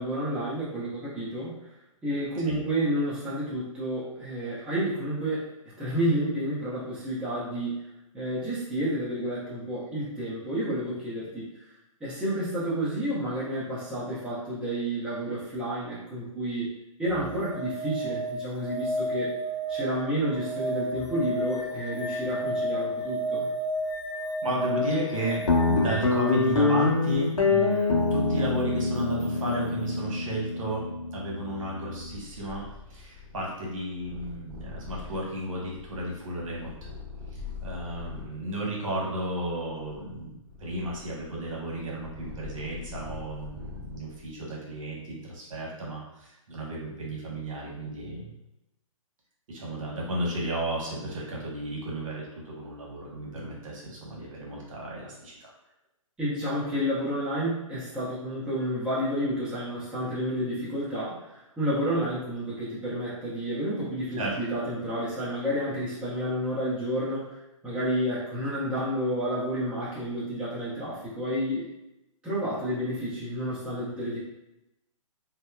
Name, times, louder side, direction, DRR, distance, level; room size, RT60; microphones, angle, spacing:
voice 1, 0.0-1.5 2.0-5.5 5.8-7.8 8.1-11.5 12.0-16.7 17.0-19.3 19.7-23.5 56.2-61.3 61.6-67.2 67.6-71.7 72.2-74.2, equal, 5° right, -10 dB, 0.7 m, -30 dB
sound 1, 17.1-26.9 29.2-29.3, equal, 45° left, 0.7 m, -32 dB
voice 2, 24.4-30.8 31.1-32.6 32.9-36.9 37.3-48.3 49.5-55.5 64.2-64.3, right 1 dB, 70° right, -4 dB, 1.0 m, -33 dB
Guitar, 25.5-32.2, left 3 dB, 80° left, 0.7 m, -25 dB
Purr, 32.0-38.4 39.1-44.3, left 5 dB, 40° right, 0.7 m, -43 dB
2.8 x 2.0 x 2.3 m, 0.90 s
hypercardioid pair, 140°, 17 cm